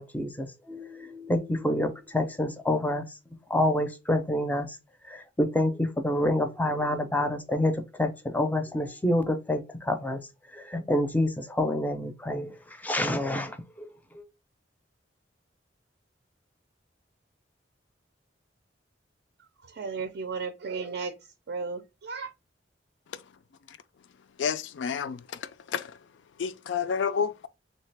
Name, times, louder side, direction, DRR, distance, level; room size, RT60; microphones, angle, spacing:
voice 1, 0.0-3.1 3.5-4.8 5.1-10.2 10.5-13.9 14.1-14.2, left 1 dB, 10° left, 0.4 m, -28 dB
voice 2, 19.8-21.1 21.5-22.3, right 4 dB, 60° right, 0.4 m, -34 dB
voice 3, 24.4-26.0 26.4-27.5, left 6 dB, 75° left, 0.4 m, -30 dB
3.2 x 2.8 x 3.2 m
head